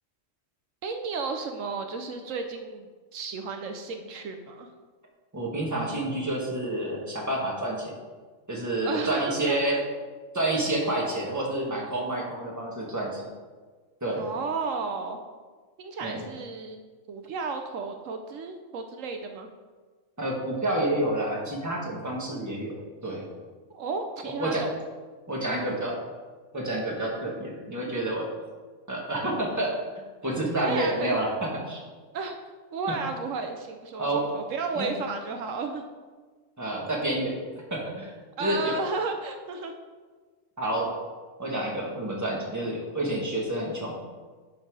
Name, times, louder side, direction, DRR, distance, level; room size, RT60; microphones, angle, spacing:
voice 1, 0.8-4.7 8.8-9.8 14.2-15.2 15.8-19.5 23.7-24.7 25.4-25.6 30.6-31.2 32.1-32.4 32.7-35.8 38.4-39.7, right 4 dB, 80° right, 6 dB, 1.0 m, -33 dB
voice 2, 5.3-7.9 8.5-9.8 10.3-13.2 14.0-14.3 16.0-16.2 20.2-22.7 23.0-23.2 24.4-24.6 25.3-25.9 26.5-28.3 28.9-29.8 30.2-31.8 34.0-34.2 34.8-34.9 36.6-37.3 37.7-38.1 38.4-38.7 40.6-40.9 41.4-43.9, right 1 dB, 15° right, -2 dB, 1.5 m, -29 dB
10.5 x 4.0 x 4.7 m, 1.4 s
omnidirectional pair, 1.3 m